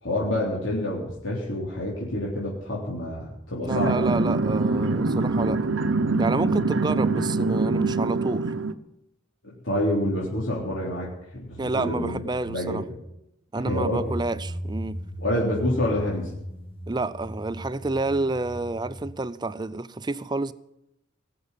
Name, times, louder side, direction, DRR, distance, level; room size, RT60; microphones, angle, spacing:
voice 1, 0.0-4.2 9.6-13.0 13.7-14.1 15.2-16.3, left 1 dB, 80° left, 3.6 m, -28 dB
voice 2, 3.6-5.6 6.2-8.5 11.6-12.8 13.5-15.0 16.9-20.5, right 2 dB, 20° right, 0.5 m, -29 dB
sound 1, 3.7-8.7, right 3 dB, 85° right, 0.8 m, -24 dB
sound 2, 13.7-19.1, equal, 30° left, 3.8 m, -36 dB
20.0 x 7.0 x 9.8 m
head